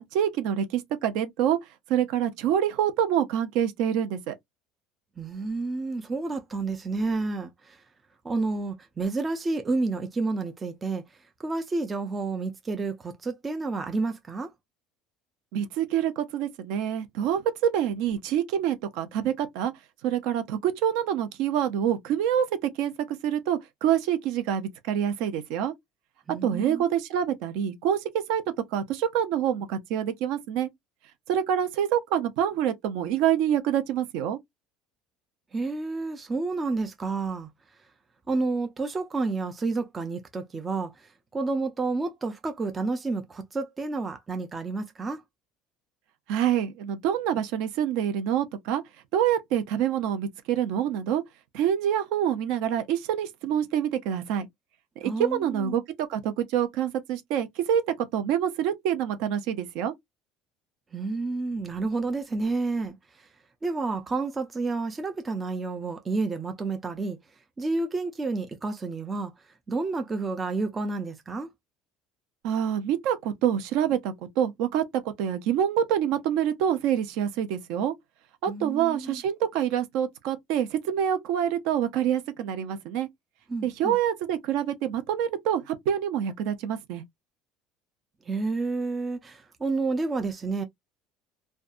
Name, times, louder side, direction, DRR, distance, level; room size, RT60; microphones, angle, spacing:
voice 1, 0.0-1.6 1.9-4.3 15.5-19.7 20.0-25.7 26.4-28.4 28.7-30.7 31.3-34.4 46.3-48.8 49.1-51.2 51.5-54.5 55.0-57.8 58.1-59.9 72.4-77.9 78.4-83.1 83.6-87.0, right 9 dB, 65° right, 0.6 m, -26 dB
voice 2, 5.2-7.8 8.2-11.0 11.4-14.5 26.3-26.8 35.5-37.5 38.3-45.2 55.0-55.8 60.9-63.3 63.6-67.2 67.6-69.3 69.7-71.5 78.5-79.2 83.5-84.0 88.3-90.6, right 3 dB, 15° right, 0.3 m, -30 dB
2.6 x 2.2 x 2.3 m
cardioid pair, 175°, 0 cm